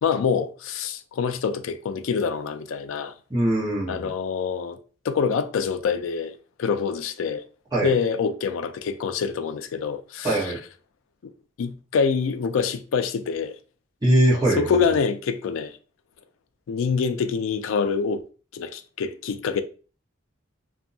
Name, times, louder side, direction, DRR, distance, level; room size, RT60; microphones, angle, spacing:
voice 1, 0.0-3.1 3.9-4.8 5.0-7.4 7.8-10.5 11.6-13.5 14.6-15.7 16.7-18.2 18.5-19.6, left 6 dB, 90° left, 0.3 m, -26 dB
voice 2, 3.3-4.1 7.7-7.9 10.2-10.6 14.0-15.0, right 1 dB, 20° right, 1.1 m, -22 dB
2.6 x 2.2 x 2.6 m
head